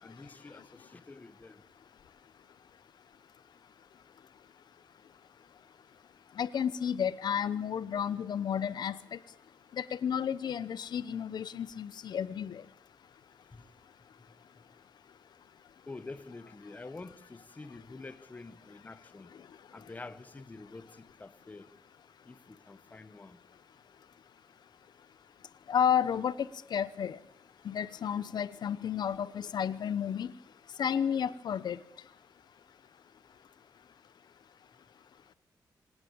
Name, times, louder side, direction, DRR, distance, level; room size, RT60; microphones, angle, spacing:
voice 1, 0.0-1.6 13.5-13.6 15.9-19.3 19.7-21.7 22.2-23.4, left 3 dB, 20° left, 1.4 m, -47 dB
voice 2, 6.4-9.0 9.8-12.6 25.7-26.3 26.7-27.2 27.6-30.3 30.8-31.8, left 8 dB, 70° left, 0.9 m, -31 dB
26.0 x 18.0 x 9.0 m
wide cardioid pair, 170°, 8 cm